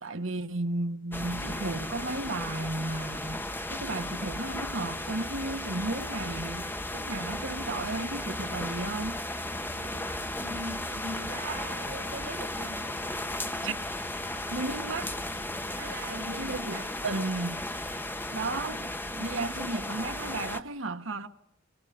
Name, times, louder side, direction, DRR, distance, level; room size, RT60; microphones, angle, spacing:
voice 1, 0.0-9.2 11.4-11.6 13.6-13.7 14.5-15.1 16.4-17.6 18.3-21.3, right 2 dB, 75° right, 1.4 m, -34 dB
sound 1, 1.1-20.6, left 1 dB, 10° left, 1.0 m, -35 dB
sound 2, 9.4-15.8, left 2 dB, 60° left, 7.6 m, -51 dB
voice 2, 9.7-13.0 15.7-16.9, right 2 dB, 50° right, 0.8 m, -42 dB
28.0 x 25.5 x 5.1 m
head